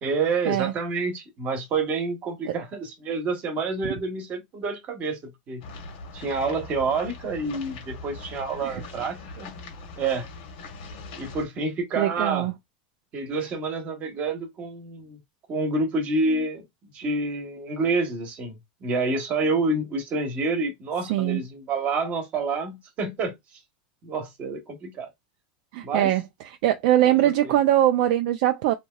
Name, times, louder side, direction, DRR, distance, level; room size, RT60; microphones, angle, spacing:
voice 1, 0.0-5.6 6.1-9.5 10.0-10.3 11.2-12.5 13.1-15.2 15.5-16.6 16.9-23.3 24.0-25.1 25.8-26.1 27.2-27.6, right 3 dB, 30° right, 1.0 m, -28 dB
sound 1, 5.6-11.4, left 3 dB, 65° left, 1.1 m, -41 dB
voice 2, 12.0-12.5 21.1-21.4 25.7-26.2 26.6-28.7, right 13 dB, 60° right, 0.4 m, -22 dB
2.9 x 2.8 x 2.2 m
supercardioid pair, 145°, 5 cm